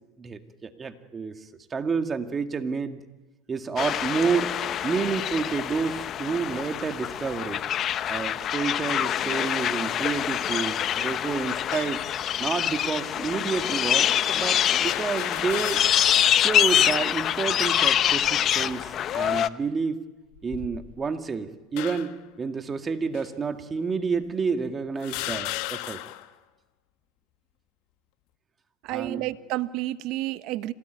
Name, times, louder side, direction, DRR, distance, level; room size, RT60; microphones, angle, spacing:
voice 1, 0.2-1.3 1.7-3.0 3.5-4.6 4.8-7.6 8.1-12.0 12.4-15.8 16.3-20.0 20.4-26.0 28.9-29.3, right 5 dB, 25° right, 7 dB, 2.1 m, -29 dB
sound 1, 3.8-19.5, left 10 dB, 40° left, 0.8 m, -25 dB
sound 2, 11.7-12.1 12.9-13.0 14.9-16.3 16.7-16.8 18.0-18.4 19.1-19.4 20.3-21.1 21.8-22.3 23.1-23.3 24.1-24.2 25.0-26.3, left 17 dB, 65° left, 1.2 m, -35 dB
voice 2, 28.8-30.7, right 16 dB, 60° right, 13 dB, 1.1 m, -30 dB
27.0 x 18.0 x 9.4 m, 1.2 s
supercardioid pair, 105°, 0 cm